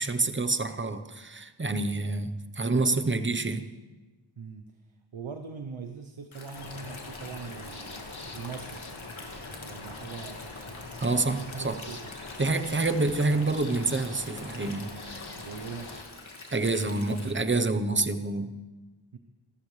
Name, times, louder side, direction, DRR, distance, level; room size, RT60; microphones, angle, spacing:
voice 1, 0.0-3.7 11.0-11.8 12.4-15.0 16.5-18.6, right 3 dB, 25° right, 9 dB, 0.9 m, -27 dB
voice 2, 4.4-4.8 5.1-10.8 11.1-12.2 15.4-16.0 19.1-19.2, right 5 dB, 75° right, 6 dB, 1.0 m, -42 dB
Stream, 6.3-17.3, left 3 dB, 70° left, 2.4 m, -46 dB
sound 1, 6.5-16.0, left 3 dB, 55° left, 1.9 m, -43 dB
27.0 x 14.0 x 3.3 m, 1.2 s
wide cardioid pair, 80°, 48 cm